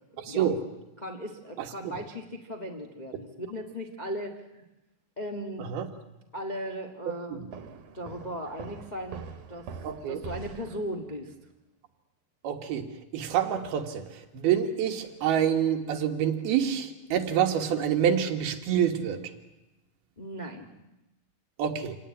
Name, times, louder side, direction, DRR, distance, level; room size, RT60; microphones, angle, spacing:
voice 1, 0.2-0.6 1.6-1.9 5.6-5.9 7.3-7.5 9.8-10.2 12.4-12.9 13.1-19.3 21.6-22.0, right 9 dB, 85° right, 5 dB, 3.7 m, -27 dB
voice 2, 1.0-4.6 5.2-5.7 6.3-7.6 7.9-9.2 9.5-9.7 10.1-11.3 20.2-20.7, equal, 40° left, 4 dB, 0.6 m, -37 dB
sound 1, 7.5-11.2, right 4 dB, 60° right, 2.7 m, -43 dB
27.0 x 18.0 x 9.9 m, 0.97 s
omnidirectional pair, 4.3 m